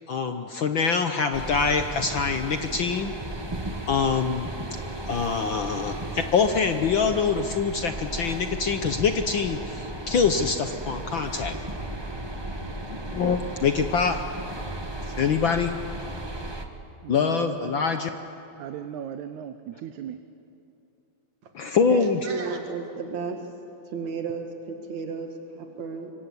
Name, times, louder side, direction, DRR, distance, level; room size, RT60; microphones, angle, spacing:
voice 1, 0.1-3.1 3.9-4.5 5.1-11.5 13.1-14.2 15.0-15.8 17.1-18.1 21.5-22.2, left 5 dB, 65° left, 7 dB, 1.2 m, -24 dB
sound 1, 1.3-16.7, right 1 dB, 25° right, 0.5 m, -35 dB
voice 2, 17.0-17.8 18.6-20.2, right 9 dB, 85° right, 9 dB, 2.3 m, -37 dB
voice 3, 21.9-23.5 23.8-26.1, right 5 dB, 70° right, 3 dB, 3.3 m, -33 dB
26.0 x 24.5 x 8.4 m, 2.8 s
omnidirectional pair, 3.3 m